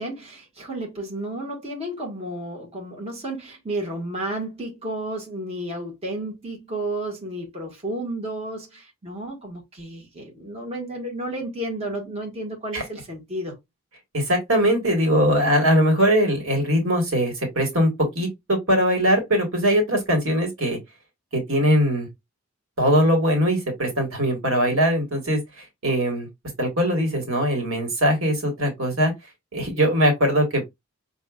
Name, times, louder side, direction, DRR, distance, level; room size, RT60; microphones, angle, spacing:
voice 1, 0.0-13.6, right 1 dB, 30° right, 1.5 m, -32 dB
voice 2, 14.1-20.8 21.3-22.1 22.8-26.3 26.6-29.1 29.5-30.7, equal, 75° right, 1.6 m, -21 dB
5.8 x 2.6 x 2.3 m
head